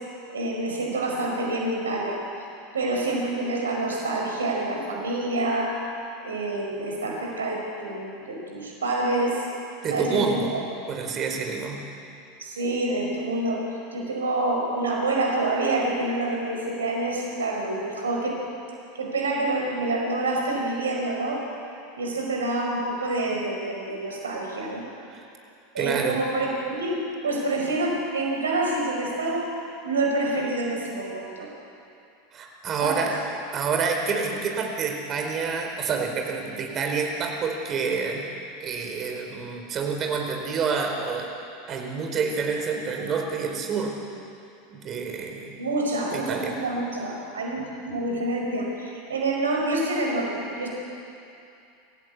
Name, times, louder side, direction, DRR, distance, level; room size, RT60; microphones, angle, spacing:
voice 1, 0.3-2.2 2.7-5.8 6.2-9.4 9.9-10.5 12.4-13.6 13.9-18.5 18.9-21.4 22.0-24.8 25.7-29.5 29.8-31.5 32.8-33.1 45.6-50.7, right 2 dB, 80° right, 0 dB, 5.0 m, -27 dB
voice 2, 9.8-10.6 10.9-11.8 25.1-25.3 25.8-26.2 32.3-33.1 33.5-38.2 38.6-41.3 41.7-43.9 44.7-45.5 46.1-46.5, right 5 dB, 35° right, 2 dB, 4.6 m, -28 dB
27.0 x 16.0 x 8.4 m, 2.6 s
figure-of-eight pair, 85°, 0 cm